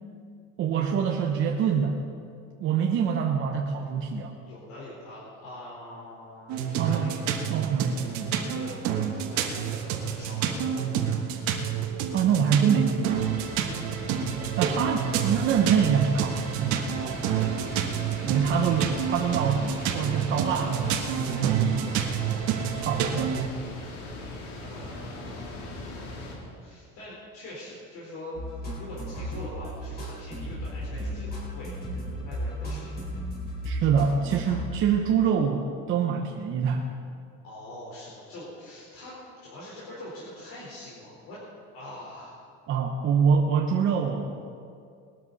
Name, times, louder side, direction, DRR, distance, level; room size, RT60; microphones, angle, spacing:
voice 1, 0.6-2.0 2.6-4.3 6.8-7.1 7.5-8.4 12.1-13.2 14.6-17.2 18.2-22.0 22.8-23.4 33.6-36.8 42.7-44.4, right 6 dB, 40° right, 1 dB, 0.9 m, -25 dB
voice 2, 4.4-7.4 8.3-8.8 9.1-10.8 21.7-22.6 24.6-28.4 28.8-33.1 37.4-39.2 39.4-41.4 41.7-42.4, left 1 dB, 60° left, -7 dB, 4.3 m, -44 dB
sound 1, 6.5-23.5, right 8 dB, 60° right, 1.4 m, -29 dB
sound 2, 13.0-26.4, left 2 dB, 80° left, 3.6 m, -40 dB
sound 3, 28.4-35.2, equal, 30° left, 4.7 m, -35 dB
20.0 x 12.5 x 4.1 m, 2.3 s
cardioid pair, 170°, 32 cm